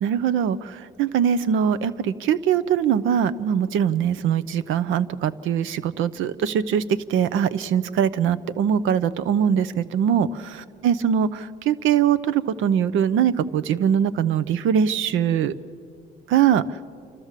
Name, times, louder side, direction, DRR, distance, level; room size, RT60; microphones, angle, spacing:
voice 1, 0.0-10.3 10.8-15.5 16.3-16.6, right 8 dB, 85° right, 15 dB, 0.7 m, -22 dB
29.0 x 13.0 x 7.4 m, 2.3 s
cardioid pair, 90°, 20 cm